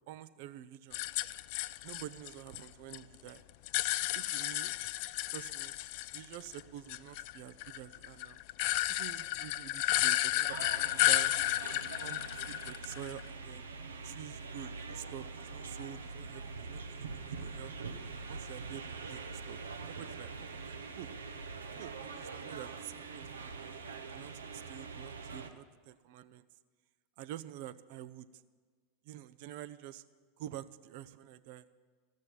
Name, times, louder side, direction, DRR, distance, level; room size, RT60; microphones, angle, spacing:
voice 1, 0.1-1.0 1.8-3.4 4.1-4.7 5.3-5.8 6.1-8.4 8.9-11.3 11.7-13.6 14.0-17.7 18.1-21.1 21.8-23.8 24.1-26.5 27.2-28.3 29.0-30.0 30.4-31.7, right 12 dB, 55° right, 13 dB, 0.6 m, -48 dB
sound 1, 0.9-3.0 3.3-6.6 6.9-13.3, left 17 dB, 55° left, 0.3 m, -32 dB
sound 2, 10.5-25.5, right 4 dB, 80° right, 0.9 m, -44 dB
15.0 x 6.4 x 10.0 m, 1.5 s
figure-of-eight pair, 85°, 0 cm